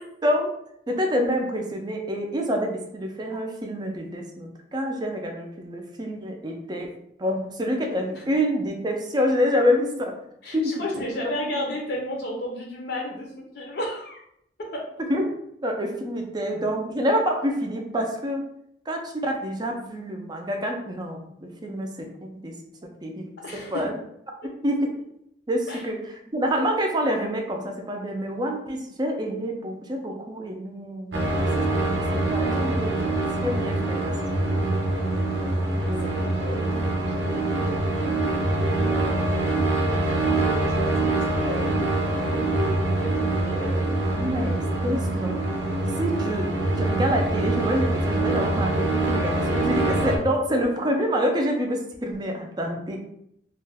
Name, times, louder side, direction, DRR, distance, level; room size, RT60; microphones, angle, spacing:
voice 1, 0.2-0.5 0.9-6.9 7.2-10.1 10.5-11.1 15.1-15.3 15.6-18.4 18.9-22.6 23.0-24.0 24.6-24.9 25.5-34.6 35.4-36.3 44.1-45.3 46.0-53.0, equal, 25° right, 2 dB, 0.4 m, -27 dB
voice 2, 10.4-14.2 14.6-14.9 23.4-23.9 24.4-24.5 25.7-25.8 36.0-39.7 40.4-43.9, left 1 dB, 65° left, -1 dB, 0.6 m, -34 dB
sound 1, 31.1-50.2, right 2 dB, 80° right, 0.6 m, -24 dB
2.4 x 2.2 x 3.3 m, 0.75 s
head